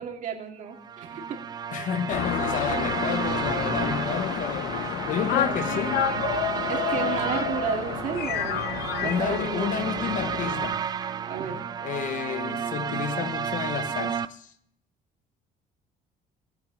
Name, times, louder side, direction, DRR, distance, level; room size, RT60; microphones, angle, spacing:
voice 1, 0.0-1.4 6.7-9.8 11.3-11.6, right 7 dB, 55° right, 2.1 m, -33 dB
sound 1, 0.8-14.3, right 7 dB, 25° right, 0.4 m, -32 dB
voice 2, 1.7-4.8 5.1-6.0 9.0-10.8 11.8-14.4, left 8 dB, 55° left, 1.0 m, -31 dB
sound 2, 2.1-10.7, left 10 dB, 75° left, 0.8 m, -30 dB
sound 3, 3.1-6.9 8.1-8.2, left 1 dB, 15° left, 3.2 m, -44 dB
19.5 x 8.4 x 3.8 m
cardioid pair, 160°, 16 cm